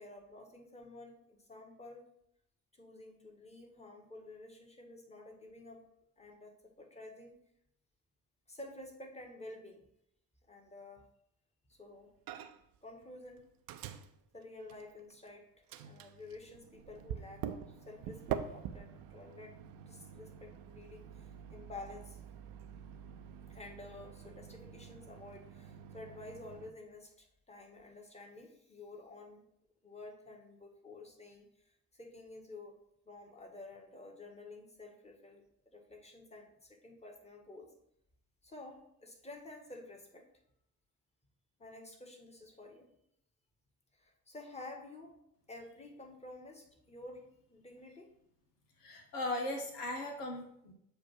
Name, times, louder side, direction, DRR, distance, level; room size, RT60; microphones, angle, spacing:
voice 1, 0.0-2.0 2.7-5.8 6.2-7.3 8.5-9.8 10.5-11.0 11.7-12.1 12.8-13.4 14.3-19.5 19.9-22.2 23.5-29.4 29.8-32.8 33.0-35.4 35.7-37.7 38.4-40.2 41.6-42.8 43.9-45.1 45.5-48.1, left 2 dB, 15° left, 1 dB, 1.6 m, -51 dB
Microwave oven, 12.3-12.8 13.0-15.3 15.7-26.7, right 9 dB, 50° right, 0.6 m, -46 dB
voice 2, 48.8-50.7, left 2 dB, 80° left, 3 dB, 1.0 m, -38 dB
7.8 x 2.6 x 5.8 m, 0.75 s
figure-of-eight pair, 55°, 46 cm